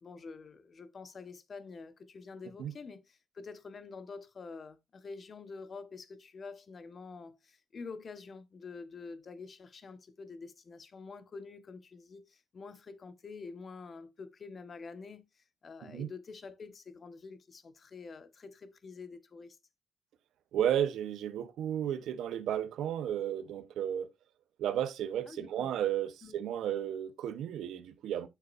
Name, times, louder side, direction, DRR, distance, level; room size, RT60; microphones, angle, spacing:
voice 1, 0.0-19.6 25.2-25.7 26.2-26.4, left 4 dB, 45° left, 1.4 m, -47 dB
voice 2, 20.5-24.1 24.6-28.3, right 10 dB, 80° right, 1.0 m, -33 dB
9.5 x 6.7 x 2.6 m
cardioid pair, 90°, 0 cm